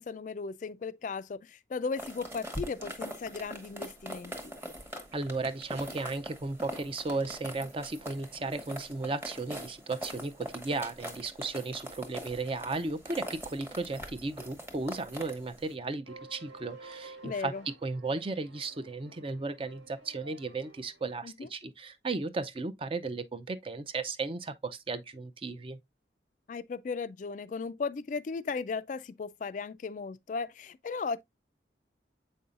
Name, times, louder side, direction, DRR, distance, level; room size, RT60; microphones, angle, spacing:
voice 1, 0.0-4.5 17.2-17.6 21.2-21.5 26.5-31.2, left 4 dB, 40° left, 0.3 m, -36 dB
sound 1, 2.0-15.7, equal, 15° right, 1.0 m, -43 dB
voice 2, 5.1-25.8, right 3 dB, 30° right, 0.5 m, -35 dB
sound 2, 16.0-21.1, right 3 dB, 85° right, 1.7 m, -52 dB
7.6 x 5.4 x 2.4 m
head